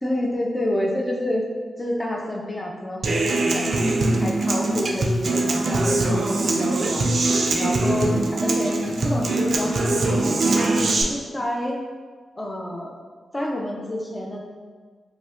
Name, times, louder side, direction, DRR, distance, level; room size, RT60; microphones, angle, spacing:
voice 1, 0.0-1.5 1.8-3.8 4.2-7.1 7.6-10.1 10.5-11.8 12.4-12.9 13.3-14.5, left 1 dB, 15° left, -1 dB, 0.4 m, -28 dB
Human voice / Acoustic guitar, 3.0-11.0, right 2 dB, 55° right, 0.4 m, -22 dB
5.0 x 2.1 x 2.4 m, 1.5 s
wide cardioid pair, 130°, 0 cm